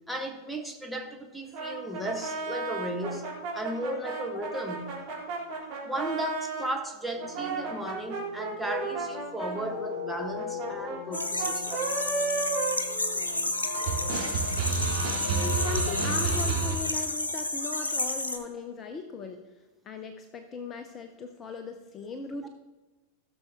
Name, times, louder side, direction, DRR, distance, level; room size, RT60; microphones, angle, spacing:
voice 1, 0.1-5.0 5.8-11.9, right 1 dB, ahead, 2 dB, 1.3 m, -35 dB
sound 1, 1.5-6.7 7.2-13.5 13.7-16.7, right 4 dB, 45° right, 3.5 m, -33 dB
sound 2, 7.1-16.5, left 6 dB, 55° left, 2.1 m, -41 dB
sound 3, 11.1-18.4, left 2 dB, 80° left, 1.0 m, -31 dB
voice 2, 15.4-19.4 19.8-22.5, left 4 dB, 25° left, 7 dB, 0.8 m, -38 dB
16.5 x 6.7 x 3.5 m, 1.1 s
figure-of-eight pair, 90°, 0 cm